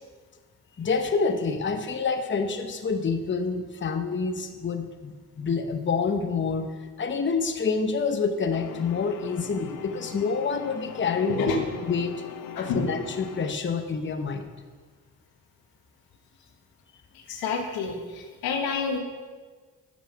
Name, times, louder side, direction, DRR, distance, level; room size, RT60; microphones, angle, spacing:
voice 1, 0.8-6.7 7.0-11.5 11.9-12.2 12.5-14.5, left 5 dB, 35° left, 7 dB, 0.8 m, -27 dB
sound 1, 8.5-13.5, left 9 dB, 60° left, 0.6 m, -41 dB
voice 2, 11.3-11.6 12.5-13.0 17.1-19.0, left 4 dB, 85° left, 4 dB, 1.2 m, -29 dB
7.3 x 7.0 x 5.8 m, 1.5 s
supercardioid pair, 50°, 36 cm